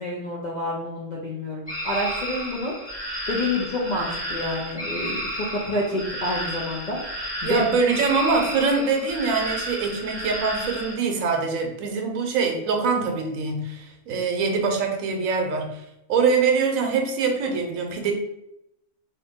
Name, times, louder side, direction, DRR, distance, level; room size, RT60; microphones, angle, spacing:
voice 1, 0.0-7.7, left 1 dB, 60° left, -3 dB, 0.5 m, -29 dB
sound 1, 1.7-10.9, equal, 10° right, 0.9 m, -32 dB
voice 2, 7.4-18.1, right 5 dB, 75° right, 3 dB, 1.0 m, -24 dB
2.7 x 2.6 x 3.5 m, 0.84 s
omnidirectional pair, 1.4 m